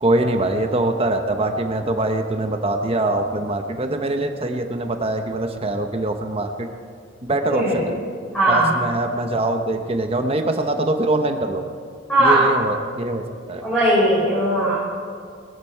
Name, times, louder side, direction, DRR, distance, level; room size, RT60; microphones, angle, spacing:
voice 1, 0.0-6.7 7.3-7.9 8.5-11.6 12.2-13.6, right 2 dB, 30° right, 5 dB, 0.9 m, -23 dB
voice 2, 7.5-7.8 8.3-8.8 12.1-12.4 13.6-14.7, right 1 dB, 5° left, -11 dB, 4.9 m, -18 dB
21.0 x 13.5 x 4.5 m, 2.1 s
head